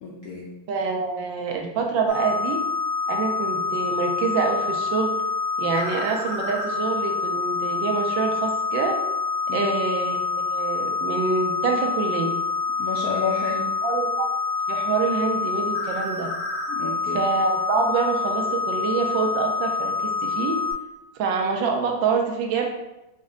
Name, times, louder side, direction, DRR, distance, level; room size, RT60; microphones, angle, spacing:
voice 1, 0.0-0.5 9.5-9.6 12.8-13.7 16.7-17.2, left 5 dB, 75° left, -4 dB, 0.8 m, -30 dB
voice 2, 0.7-2.6 3.1-5.1 5.6-8.9 9.5-10.2 10.5-12.3 13.8-14.3 14.7-16.3 17.1-19.9 20.2-20.6 21.1-22.7, right 5 dB, 75° right, 2 dB, 1.2 m, -26 dB
sound 1, 2.1-20.7, left 4 dB, 90° left, 2.2 m, -27 dB
5.1 x 2.2 x 3.6 m, 0.97 s
omnidirectional pair, 2.2 m